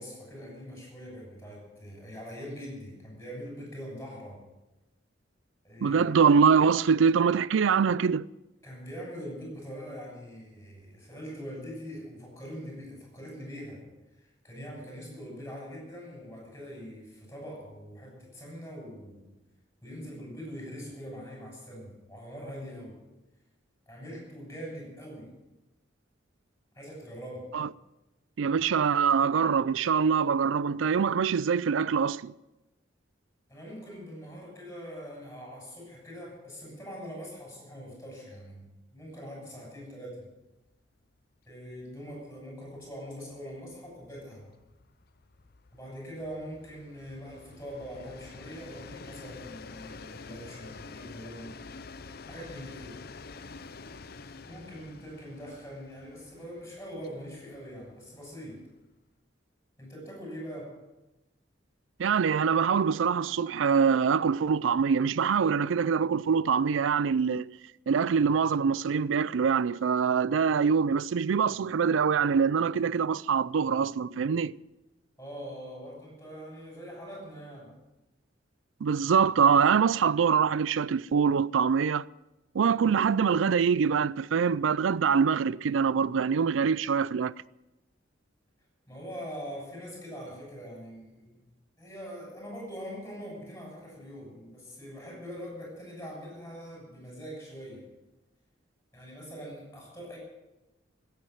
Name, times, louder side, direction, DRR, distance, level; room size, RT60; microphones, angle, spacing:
voice 1, 0.0-4.4 5.6-6.1 8.6-13.8 14.2-19.3 19.8-23.0 23.9-25.3 26.7-27.5 33.5-40.3 41.5-44.5 45.7-51.6 52.3-53.0 54.4-58.6 59.8-60.8 75.2-77.7 88.9-91.5 91.8-97.9 98.9-100.2, equal, 15° left, 7.1 m, -43 dB
voice 2, 5.8-8.3 27.5-27.7 28.4-32.3 62.0-67.5 67.9-74.6 78.8-82.1 82.5-87.3, right 6 dB, 85° right, 0.4 m, -24 dB
Train, 40.7-40.8 41.1-41.2 41.5-58.9, left 4 dB, 55° left, 0.7 m, -48 dB
15.5 x 8.3 x 9.2 m
head